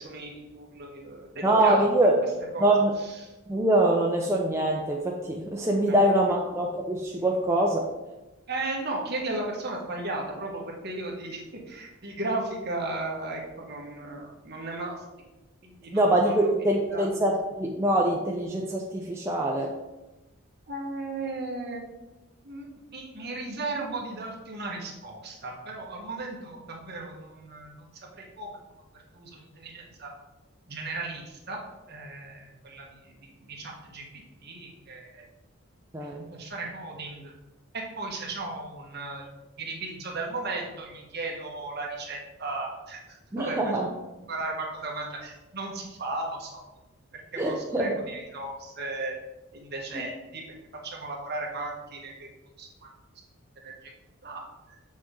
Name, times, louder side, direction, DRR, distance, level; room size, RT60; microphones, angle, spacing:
voice 1, 0.0-1.8 2.5-2.7 3.2-3.3 5.9-6.1 8.5-14.9 15.6-16.0 16.9-17.1 20.7-21.8 22.4-28.6 29.1-30.1 30.7-31.6 31.9-33.1 33.4-35.2 36.0-37.3 37.7-39.3 39.6-43.0 43.4-43.7 44.3-46.6 47.3-49.1 49.5-50.5 50.8-52.3 52.6-52.9 53.6-53.7 54.2-54.4, right 2 dB, 45° right, -1 dB, 1.4 m, -35 dB
voice 2, 1.4-2.2 2.6-2.9 3.5-7.8 15.9-19.7 35.9-36.2 43.3-43.9 47.4-48.0 49.9-50.0, right 1 dB, 10° right, -1 dB, 0.5 m, -24 dB
7.2 x 6.3 x 3.8 m, 1.1 s
head